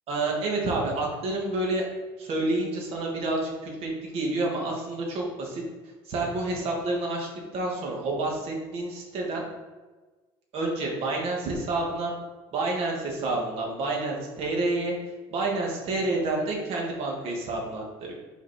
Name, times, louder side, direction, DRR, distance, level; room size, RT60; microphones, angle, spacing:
voice 1, 0.1-1.8 2.2-5.6 6.0-9.4 10.5-12.1 12.5-14.9 15.3-18.1, right 2 dB, 55° right, -1 dB, 2.3 m, -29 dB
5.8 x 5.8 x 4.5 m, 1.3 s
supercardioid pair, 100°, 12 cm